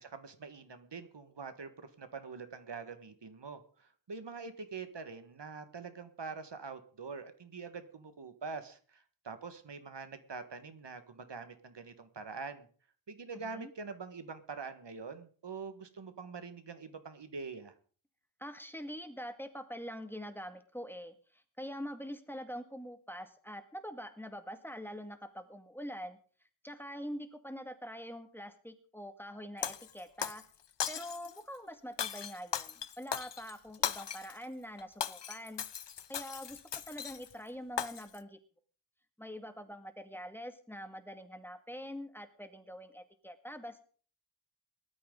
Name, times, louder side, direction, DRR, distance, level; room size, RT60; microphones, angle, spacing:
voice 1, 0.0-12.7 13.1-17.7, right 4 dB, 65° right, 9 dB, 1.6 m, -45 dB
voice 2, 18.4-26.2 26.6-30.4 30.9-35.6 36.1-38.4 39.2-43.9, equal, 5° left, 7 dB, 2.0 m, -44 dB
Shatter, 29.6-30.4 30.8-31.4 32.0-34.4 34.8-37.3 37.8-38.2, left 8 dB, 65° left, 0.8 m, -38 dB
19.0 x 13.0 x 3.9 m, 0.43 s
cardioid pair, 55°, 46 cm